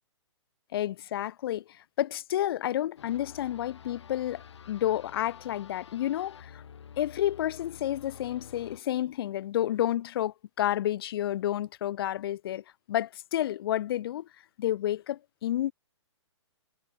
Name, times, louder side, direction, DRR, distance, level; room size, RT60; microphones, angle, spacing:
voice 1, 0.7-6.6 7.0-14.3 14.6-15.7, left 12 dB, 50° left, 0.5 m, -30 dB
sound 1, 3.0-8.8, left 7 dB, 65° left, 6.3 m, -49 dB
hypercardioid pair, 125°, 15 cm